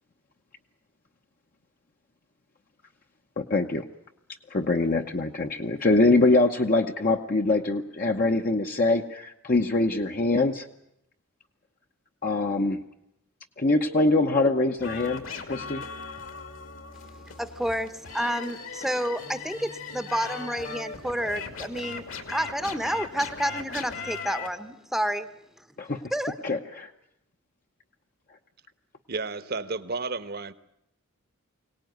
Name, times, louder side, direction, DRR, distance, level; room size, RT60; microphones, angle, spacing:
voice 1, 3.4-3.8 4.5-10.7 12.2-12.8 13.6-15.8 25.8-26.0 26.4-26.9, left 2 dB, 40° left, 0.9 m, -24 dB
sound 1, 14.8-24.5, left 4 dB, 70° left, 2.5 m, -38 dB
voice 2, 17.4-25.3 26.1-26.3, equal, ahead, 0.8 m, -30 dB
voice 3, 29.1-30.5, right 3 dB, 50° right, 1.1 m, -32 dB
23.5 x 18.5 x 9.4 m
head